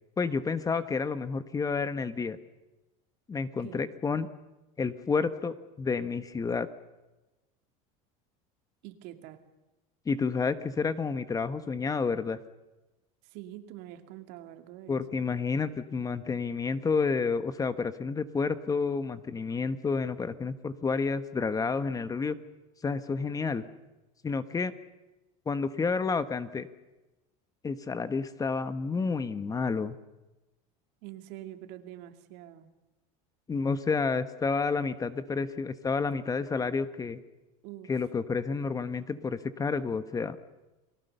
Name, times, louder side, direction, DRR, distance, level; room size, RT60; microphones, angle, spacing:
voice 1, 0.2-2.4 3.3-4.3 4.8-6.7 10.1-12.4 14.9-22.4 22.8-23.6 24.2-24.7 25.5-26.7 27.6-29.9 33.5-37.2 37.9-40.4, left 4 dB, 20° left, 12 dB, 1.2 m, -30 dB
voice 2, 3.6-3.9 8.8-9.4 13.2-15.2 31.0-32.7 37.6-37.9, right 13 dB, 70° right, 7 dB, 2.4 m, -45 dB
30.0 x 20.0 x 6.9 m, 1.1 s
supercardioid pair, 120°, 17 cm